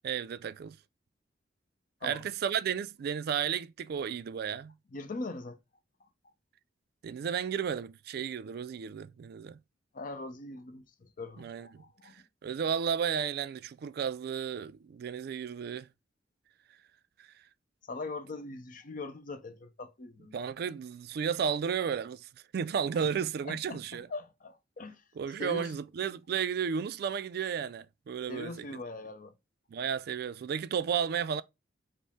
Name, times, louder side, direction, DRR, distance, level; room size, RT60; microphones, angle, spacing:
voice 1, 0.0-0.8 2.0-4.7 7.0-9.6 11.4-15.9 17.2-17.3 20.3-24.1 25.2-28.7 29.7-31.4, right 7 dB, 55° right, 0.3 m, -33 dB
voice 2, 4.9-5.6 6.0-6.1 9.9-12.2 17.8-20.3 22.9-23.1 23.4-25.0 25.4-25.7 28.3-29.3, left 3 dB, 45° left, 0.6 m, -41 dB
5.2 x 2.0 x 3.4 m
head